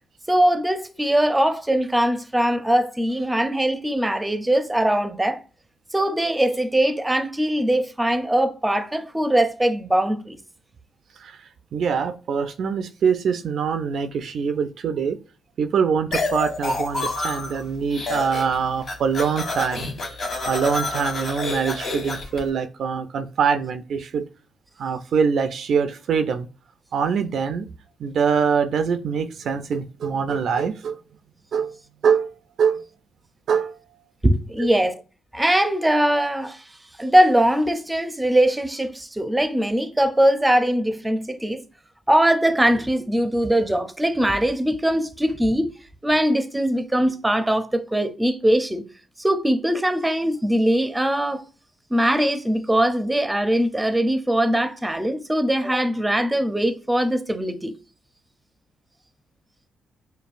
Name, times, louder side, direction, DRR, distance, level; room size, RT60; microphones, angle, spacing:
voice 1, 0.3-5.4 5.9-10.4 34.2-35.0 35.3-36.6 37.0-41.6 42.1-45.7 46.0-48.8 49.2-51.4 51.9-57.7, right 1 dB, 10° right, 0.5 m, -21 dB
voice 2, 11.7-15.2 15.6-19.8 20.5-24.2 24.8-26.5 26.9-27.7 28.0-31.0 31.5-31.7 32.0-32.3 32.6-32.8 33.5-33.8 34.6-34.7, right 6 dB, 65° right, 0.3 m, -23 dB
sound 1, 16.1-17.6 17.9-18.6 18.8-22.4, left 2 dB, 70° left, 1.4 m, -28 dB
5.1 x 2.2 x 2.5 m
cardioid pair, 70°, 0 cm